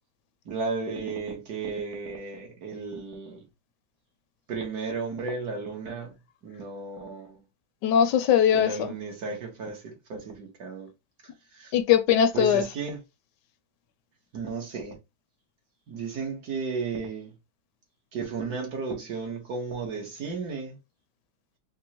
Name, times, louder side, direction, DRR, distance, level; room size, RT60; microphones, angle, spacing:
voice 1, 0.5-3.4 4.5-6.1 6.4-7.4 8.5-10.9 11.6-11.7 12.3-13.0 14.3-15.0 15.9-17.3 18.1-20.8, right 4 dB, 65° right, 1.6 m, -34 dB
voice 2, 7.8-8.9 11.7-12.7, left 9 dB, 75° left, 1.2 m, -21 dB
5.1 x 2.1 x 2.9 m
omnidirectional pair, 1.9 m